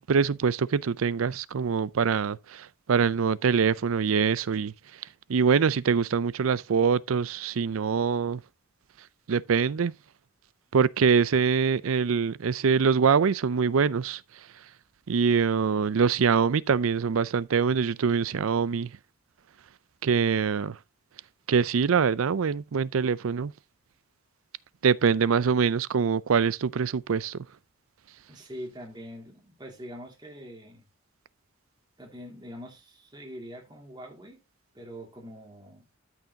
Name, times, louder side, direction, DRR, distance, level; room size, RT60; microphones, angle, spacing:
voice 1, 0.0-4.7 5.3-8.4 9.3-9.9 10.7-14.2 15.1-18.9 20.0-20.8 21.5-23.5 24.8-27.5, right 6 dB, 90° right, 0.5 m, -24 dB
voice 2, 28.3-30.8 32.0-34.4 34.7-35.9, equal, 20° right, 2.3 m, -43 dB
13.0 x 5.9 x 2.8 m
head